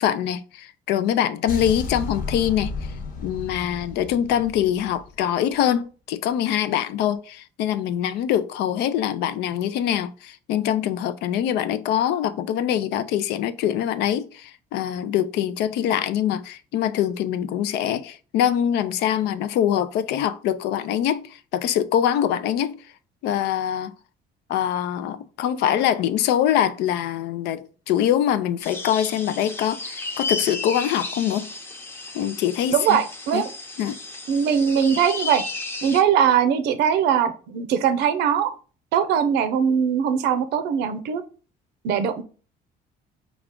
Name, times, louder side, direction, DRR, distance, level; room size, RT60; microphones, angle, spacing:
voice 1, 0.0-2.7 3.2-22.8 23.2-23.9 24.5-31.5 32.1-33.0 33.3-33.4 33.8-34.0, left 10 dB, 85° left, 0.4 m, -24 dB
sound 1, 1.5-5.6, left 4 dB, 55° left, 1.0 m, -33 dB
sound 2, 28.6-36.0, left 3 dB, 15° left, 0.7 m, -33 dB
voice 2, 32.7-33.5 34.3-35.4 35.8-38.5 38.9-41.2 41.8-42.2, right 8 dB, 85° right, 0.6 m, -21 dB
4.9 x 2.4 x 3.6 m
cardioid pair, 110°, 17 cm